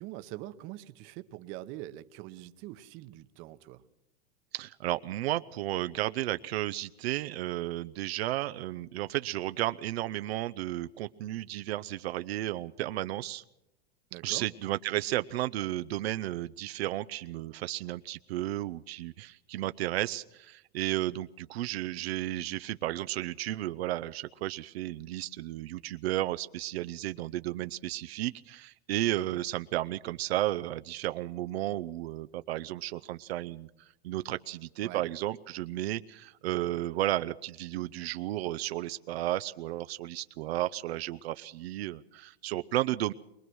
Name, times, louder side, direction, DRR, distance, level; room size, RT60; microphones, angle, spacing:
voice 1, 0.0-3.8 14.1-14.5 34.8-35.0, right 16 dB, 40° right, 11 dB, 1.0 m, -43 dB
voice 2, 4.5-13.4 14.2-33.7 34.0-43.1, right 15 dB, 70° right, 11 dB, 0.7 m, -33 dB
23.0 x 20.0 x 6.3 m, 0.88 s
supercardioid pair, 150°, 32 cm